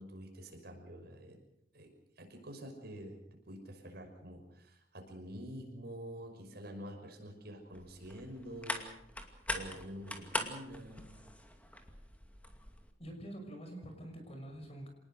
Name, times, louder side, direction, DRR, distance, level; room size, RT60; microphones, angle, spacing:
voice 1, 0.0-1.4 1.7-9.0 9.5-11.3, equal, 60° right, 4 dB, 5.7 m, -47 dB
sound 1, 7.7-12.9, left 1 dB, 10° left, 2.4 m, -42 dB
voice 2, 13.0-14.9, right 1 dB, 35° left, 4 dB, 6.0 m, -46 dB
26.5 x 19.5 x 6.5 m, 0.78 s
head